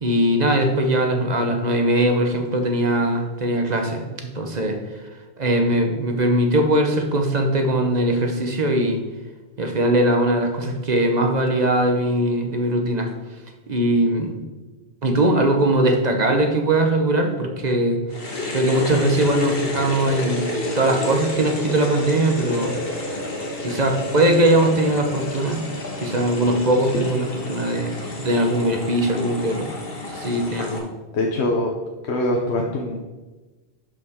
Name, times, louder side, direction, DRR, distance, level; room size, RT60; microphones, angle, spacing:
voice 1, 0.0-4.8 5.4-9.0 9.6-13.1 13.7-14.4 15.0-18.0 18.5-20.5 20.7-22.8 23.6-25.6 26.0-29.7 30.1-30.9, right 1 dB, 45° right, 4 dB, 1.0 m, -20 dB
sound 1, 18.1-30.8, left 2 dB, 60° left, 1.5 m, -30 dB
voice 2, 31.1-31.7 32.0-33.0, left 1 dB, 80° left, 1 dB, 1.1 m, -23 dB
11.0 x 5.3 x 3.6 m, 1.2 s
omnidirectional pair, 1.1 m